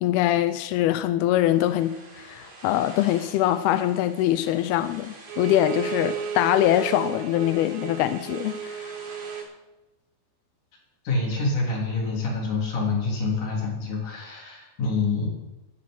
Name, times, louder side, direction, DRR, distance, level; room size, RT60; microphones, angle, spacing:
voice 1, 0.0-8.9, left 13 dB, 85° left, 12 dB, 2.2 m, -23 dB
sound 1, 1.3-9.4, right 2 dB, 45° right, 4.3 m, -46 dB
Bowed string instrument, 5.3-9.5, right 7 dB, 80° right, 2.8 m, -34 dB
voice 2, 11.0-15.3, left 3 dB, 45° left, -2 dB, 4.6 m, -26 dB
12.0 x 6.7 x 9.6 m, 1.0 s
omnidirectional pair, 5.2 m